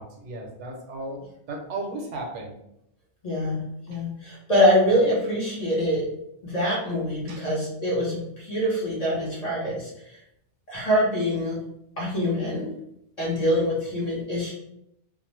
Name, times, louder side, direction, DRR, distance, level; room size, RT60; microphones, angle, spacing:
voice 1, 0.0-2.5 3.9-4.0 7.3-7.5, right 2 dB, 80° right, 1 dB, 0.9 m, -35 dB
voice 2, 3.2-3.6 3.9-6.1 6.4-9.9 10.7-11.6 12.0-12.7 13.2-14.5, equal, 35° left, -6 dB, 0.8 m, -24 dB
2.4 x 2.0 x 3.0 m, 0.78 s
omnidirectional pair, 1.2 m